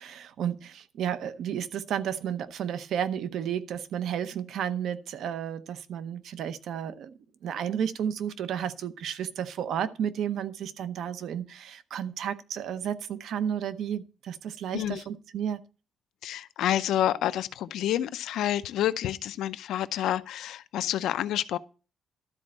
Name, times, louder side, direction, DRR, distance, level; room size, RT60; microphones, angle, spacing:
voice 1, 0.0-15.6, right 9 dB, 80° right, 0.7 m, -32 dB
voice 2, 16.2-21.6, left 12 dB, 90° left, 0.6 m, -28 dB
12.5 x 4.3 x 7.3 m
cardioid pair, 110°, 0 cm